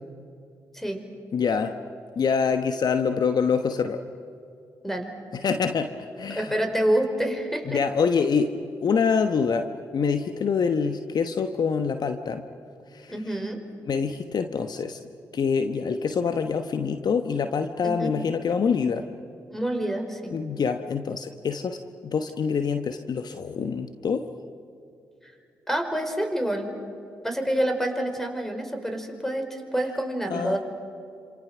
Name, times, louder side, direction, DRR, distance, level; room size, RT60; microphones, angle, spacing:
voice 1, 1.3-1.7 2.2-4.0 5.4-6.5 7.7-8.6 8.8-9.7 9.9-12.4 12.9-13.1 13.9-15.0 15.3-19.1 20.3-24.2 30.3-30.6, left 6 dB, 55° left, 8 dB, 1.2 m, -25 dB
voice 2, 6.3-7.8 13.1-13.6 17.8-18.1 19.5-20.4 25.2-25.3 25.7-26.7 27.2-30.6, right 1 dB, 5° left, 5 dB, 5.1 m, -27 dB
28.0 x 27.0 x 6.2 m, 2.7 s
hypercardioid pair, 40°, 8 cm